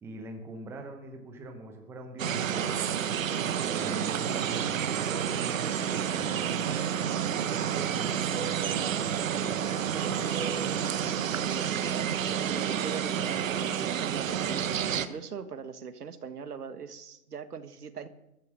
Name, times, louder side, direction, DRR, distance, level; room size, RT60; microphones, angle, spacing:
voice 1, 0.0-3.0 3.7-6.9 7.5-10.5, right 3 dB, 5° right, 4 dB, 0.9 m, -42 dB
sound 1, 2.2-15.1, right 8 dB, 60° right, 1.2 m, -29 dB
voice 2, 11.2-18.1, right 6 dB, 85° right, 11 dB, 1.6 m, -41 dB
13.5 x 12.0 x 6.3 m, 0.87 s
hypercardioid pair, 150°, 45 cm